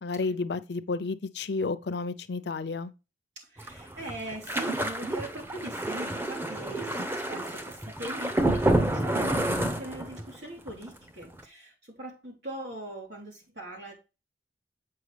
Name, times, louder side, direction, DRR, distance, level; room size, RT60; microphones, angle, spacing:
voice 1, 0.0-2.9, left 3 dB, 70° left, 0.6 m, -31 dB
voice 2, 3.3-13.9, right 1 dB, 85° right, 3.3 m, -41 dB
sound 1, 3.6-10.4 10.7-11.0 11.2-11.4, right 1 dB, 15° right, 0.7 m, -29 dB
7.7 x 5.6 x 3.3 m
head